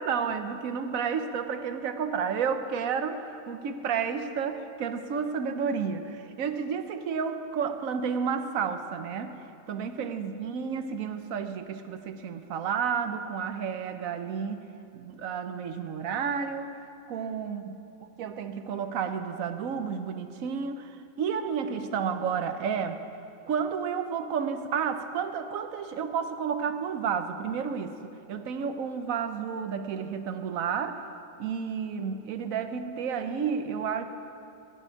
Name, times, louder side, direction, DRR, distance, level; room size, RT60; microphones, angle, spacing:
voice 1, 0.0-9.4 9.7-14.7 14.9-17.7 18.2-23.0 23.5-31.0 31.4-34.0, right 6 dB, 80° right, 8 dB, 1.2 m, -31 dB
15.5 x 5.5 x 9.6 m, 2.8 s
omnidirectional pair, 1.4 m